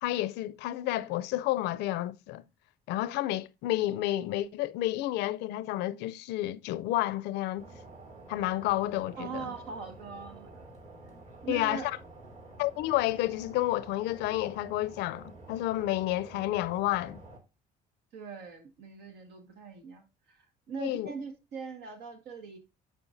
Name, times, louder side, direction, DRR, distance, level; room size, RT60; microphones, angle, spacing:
voice 1, 0.0-2.4 2.9-7.7 8.3-9.5 11.5-11.9 12.6-17.2 20.8-21.1, left 15 dB, 90° left, 0.4 m, -30 dB
sound 1, 7.6-17.4, right 2 dB, 40° right, 2.4 m, -49 dB
voice 2, 9.2-10.7 11.4-11.9 18.1-22.6, right 5 dB, 80° right, 1.6 m, -41 dB
9.9 x 4.5 x 2.6 m
cardioid pair, 110°, 17 cm